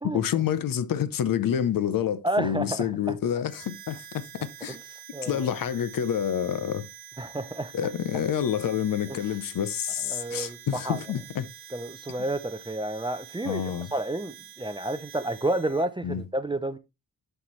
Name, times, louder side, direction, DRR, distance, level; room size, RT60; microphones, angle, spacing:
voice 1, 0.0-4.8 5.2-6.9 7.7-11.5 13.4-13.9 16.0-16.2, left 9 dB, 65° left, 0.7 m, -28 dB
voice 2, 2.2-2.9 4.7-4.8 5.1-5.5 7.2-7.7 9.1-9.2 10.1-11.0 11.7-13.6 13.9-16.8, right 1 dB, 15° right, 0.4 m, -30 dB
Harmonica, 3.5-15.9, right 11 dB, 90° right, 1.1 m, -47 dB
11.0 x 4.5 x 3.1 m
wide cardioid pair, 130°, 36 cm